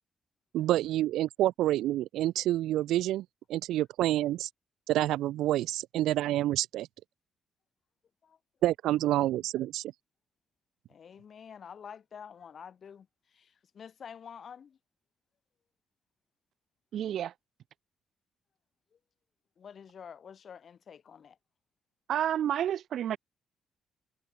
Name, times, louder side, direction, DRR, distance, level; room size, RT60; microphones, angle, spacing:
voice 1, 0.5-4.5 4.9-6.9 8.6-9.8, right 14 dB, 85° right, 0.6 m, -28 dB
voice 2, 10.9-13.1 13.3-14.8 19.6-21.4, left 7 dB, 50° left, 2.7 m, -48 dB
voice 3, 16.9-17.3 22.1-23.2, right 10 dB, 70° right, 1.0 m, -30 dB
cardioid pair, 90°, 0 cm